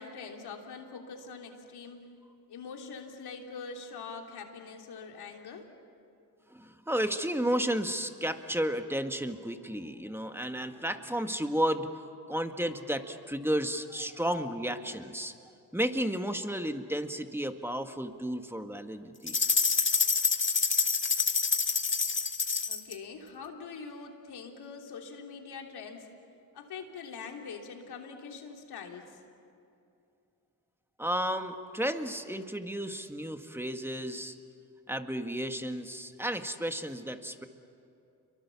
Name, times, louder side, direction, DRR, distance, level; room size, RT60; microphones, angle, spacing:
voice 1, 0.0-2.1 2.5-5.7 22.7-26.1 26.5-29.2, left 5 dB, 75° left, 2 dB, 3.2 m, -43 dB
voice 2, 6.5-11.9 12.3-15.3 15.7-19.4 31.0-34.4 34.9-37.5, equal, 5° right, 7 dB, 1.8 m, -32 dB
sound 1, 19.3-22.9, left 5 dB, 30° left, 1.7 m, -27 dB
28.5 x 23.5 x 7.1 m, 2.6 s
cardioid pair, 60°, 39 cm